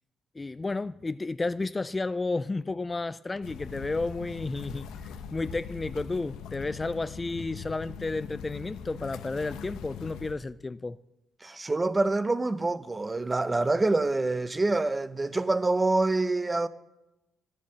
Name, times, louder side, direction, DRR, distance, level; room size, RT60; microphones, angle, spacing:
voice 1, 0.4-11.0, left 3 dB, 20° left, 0.3 m, -32 dB
sound 1, 3.4-10.3, left 7 dB, 90° left, 0.8 m, -41 dB
voice 2, 11.4-16.7, right 2 dB, 20° right, 0.6 m, -26 dB
11.5 x 7.5 x 7.6 m
cardioid pair, 90°, 0 cm